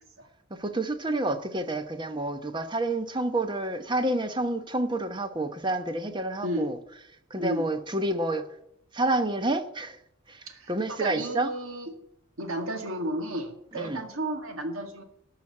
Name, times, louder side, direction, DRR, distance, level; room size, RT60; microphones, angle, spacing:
voice 1, 0.5-6.8 7.3-8.5 8.9-10.0 10.3-11.5 13.7-14.0, right 2 dB, 20° right, 0.9 m, -29 dB
voice 2, 10.5-11.9 12.4-15.0, right 1 dB, 75° right, 1.9 m, -33 dB
12.5 x 5.8 x 8.8 m
head